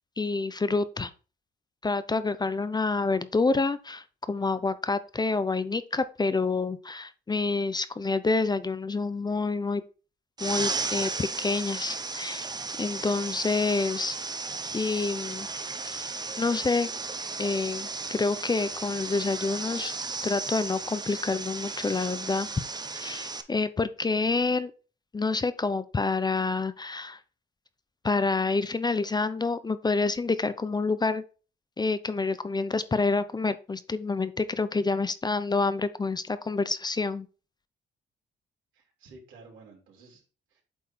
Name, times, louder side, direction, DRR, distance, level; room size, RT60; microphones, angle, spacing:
voice 1, 0.2-1.1 1.8-9.8 10.4-12.5 12.8-14.2 14.7-15.5 15.8-16.9 17.4-19.9 20.2-22.5 22.9-24.7 25.1-27.2 28.0-31.2 31.8-37.3, left 3 dB, 20° left, 13 dB, 0.5 m, -28 dB
sound 1, 10.4-23.4, right 3 dB, 20° right, 0.8 m, -35 dB
voice 2, 38.7-40.6, right 3 dB, 80° right, -2 dB, 3.2 m, -53 dB
8.5 x 3.6 x 4.3 m, 0.35 s
cardioid pair, 90°, 20 cm